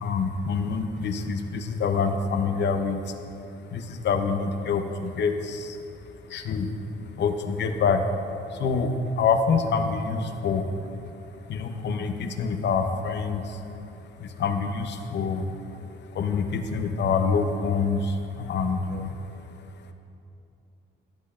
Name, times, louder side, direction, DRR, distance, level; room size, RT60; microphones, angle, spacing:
voice 1, 0.0-3.0 3.7-4.8 5.2-5.6 6.3-6.7 7.2-8.0 8.6-8.9 9.2-10.6 11.5-13.4 14.4-15.4 16.2-18.0 18.5-19.1, left 5 dB, 60° left, 7 dB, 0.7 m, -25 dB
13.5 x 8.0 x 2.4 m, 2.7 s
cardioid pair, 90°, 20 cm